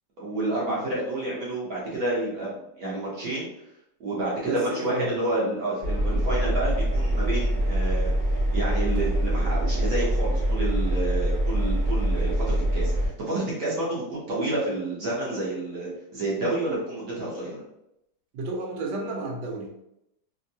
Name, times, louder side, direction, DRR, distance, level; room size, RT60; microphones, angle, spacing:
voice 1, 0.2-3.5 4.0-8.1 8.5-17.6, right 2 dB, 60° right, -6 dB, 1.2 m, -29 dB
voice 2, 4.4-5.1 18.3-19.7, right 3 dB, 75° right, 0 dB, 1.4 m, -31 dB
Engine, 5.8-13.1, right 1 dB, 35° right, 0.7 m, -24 dB
3.4 x 2.1 x 2.6 m, 0.81 s
omnidirectional pair, 2.1 m